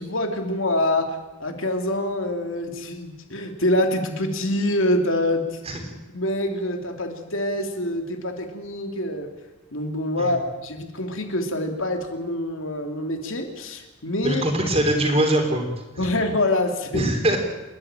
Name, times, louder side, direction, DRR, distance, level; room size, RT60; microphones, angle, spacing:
voice 1, 0.0-5.6 6.1-9.3 9.7-14.4 16.0-17.1, left 1 dB, 65° left, 5 dB, 2.7 m, -25 dB
voice 2, 14.2-15.6 16.0-16.1 16.9-17.4, right 1 dB, 30° right, 4 dB, 3.7 m, -22 dB
29.0 x 11.5 x 8.9 m, 1.1 s
head